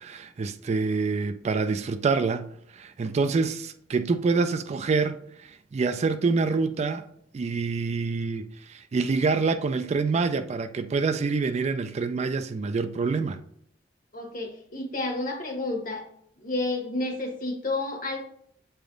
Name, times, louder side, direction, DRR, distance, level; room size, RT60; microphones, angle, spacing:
voice 1, 0.0-5.2 5.7-7.0 7.3-13.4, right 4 dB, 40° right, 0.3 m, -26 dB
voice 2, 14.1-16.0 16.4-18.2, left 2 dB, 50° left, 1.3 m, -30 dB
7.9 x 3.4 x 3.7 m
head